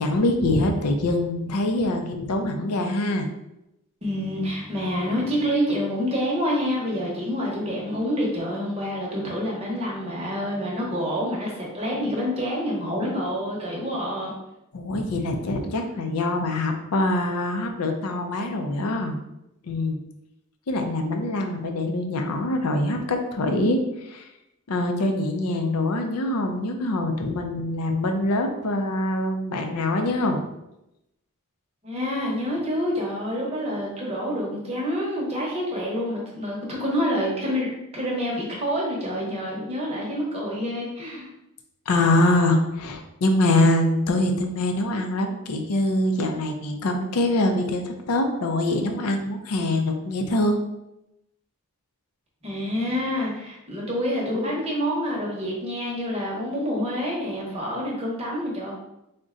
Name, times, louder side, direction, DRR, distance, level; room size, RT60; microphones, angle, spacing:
voice 1, 0.0-3.3 14.7-19.2 19.6-20.0 20.7-24.3 24.7-30.4 41.9-50.6, left 1 dB, 85° left, 4 dB, 0.5 m, -24 dB
voice 2, 4.0-14.3 31.8-41.3 52.4-58.8, equal, 25° right, -3 dB, 0.8 m, -27 dB
3.8 x 2.2 x 3.6 m, 0.88 s
head